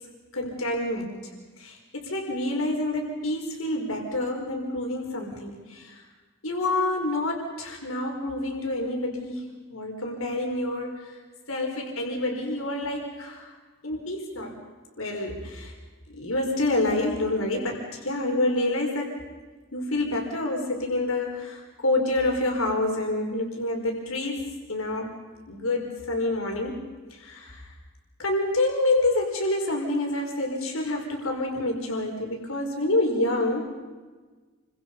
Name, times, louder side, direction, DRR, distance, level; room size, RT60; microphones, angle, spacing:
voice 1, 0.3-1.3 1.6-6.0 6.4-11.2 11.5-13.5 13.8-14.6 15.0-15.7 16.1-19.2 19.7-24.4 24.7-25.1 25.5-26.8 27.1-27.7 28.2-33.8, left 2 dB, 90° left, 1 dB, 5.0 m, -28 dB
29.5 x 25.5 x 5.5 m, 1.3 s
head